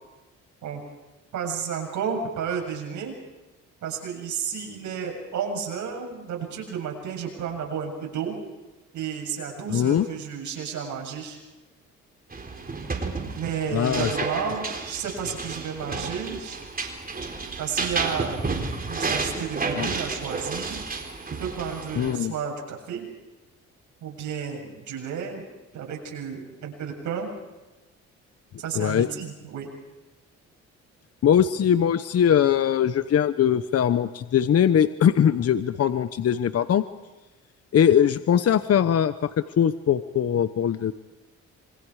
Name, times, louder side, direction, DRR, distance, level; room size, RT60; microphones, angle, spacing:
voice 1, 1.3-3.1 3.8-8.3 8.9-11.4 13.3-16.6 17.6-18.4 18.9-20.8 21.4-23.0 24.0-25.4 25.7-27.3 28.6-29.7, right 7 dB, 75° right, 1 dB, 7.7 m, -32 dB
voice 2, 9.7-10.1 13.7-14.2 19.8-19.9 21.9-22.3 28.7-29.1 31.2-36.8 37.7-40.9, left 9 dB, 55° left, 12 dB, 1.0 m, -21 dB
sound 1, 12.3-22.1, right 4 dB, 30° right, 4.1 m, -31 dB
27.0 x 24.5 x 4.9 m, 1.1 s
cardioid pair, 90°, 30 cm